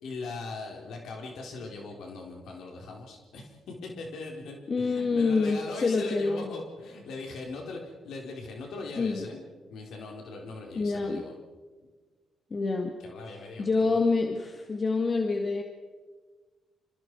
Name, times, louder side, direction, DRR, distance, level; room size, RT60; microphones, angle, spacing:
voice 1, 0.0-11.3 13.0-14.0, left 3 dB, 80° left, 0 dB, 4.2 m, -40 dB
voice 2, 4.7-6.5 9.0-9.2 10.8-11.3 12.5-12.9 13.3-15.6, left 3 dB, 35° left, 3 dB, 2.1 m, -27 dB
28.5 x 26.5 x 4.8 m, 1.4 s
cardioid pair, 115°, 0 cm